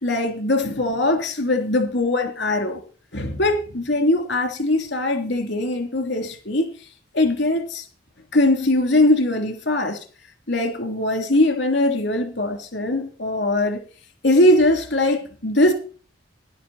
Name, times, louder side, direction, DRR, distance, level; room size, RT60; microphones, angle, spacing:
voice 1, 0.0-2.8 3.1-6.7 7.1-7.8 8.3-10.0 10.5-13.8 14.2-15.7, left 1 dB, 70° left, 3.0 m, -21 dB
12.0 x 11.0 x 4.2 m
head